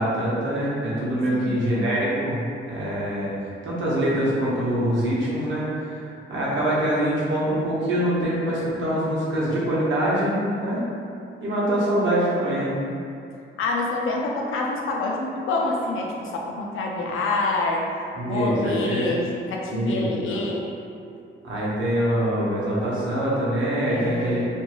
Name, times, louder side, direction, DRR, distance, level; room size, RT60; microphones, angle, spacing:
voice 1, 0.0-10.8 11.4-12.7 18.2-19.1 19.7-20.4 21.4-24.4, right 1 dB, 70° right, -7 dB, 0.8 m, -24 dB
voice 2, 1.3-1.8 13.6-17.9 18.3-20.7 23.9-24.5, left 2 dB, 80° left, -1 dB, 0.5 m, -27 dB
2.6 x 2.3 x 3.0 m, 2.5 s
wide cardioid pair, 140°, 20 cm